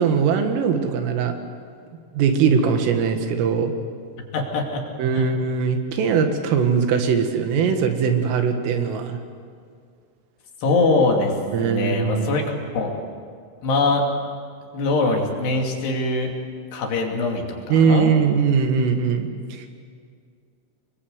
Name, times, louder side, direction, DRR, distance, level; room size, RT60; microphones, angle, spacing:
voice 1, 0.0-1.4 2.1-3.7 5.0-9.2 11.5-12.5 17.7-19.7, right 6 dB, 85° right, 6 dB, 4.4 m, -21 dB
voice 2, 4.3-4.8 5.1-5.2 10.6-12.9 13.6-14.0 14.7-16.3 16.7-18.1, left 3 dB, 60° left, 1 dB, 4.4 m, -22 dB
26.0 x 22.0 x 8.1 m, 2.2 s
omnidirectional pair, 5.8 m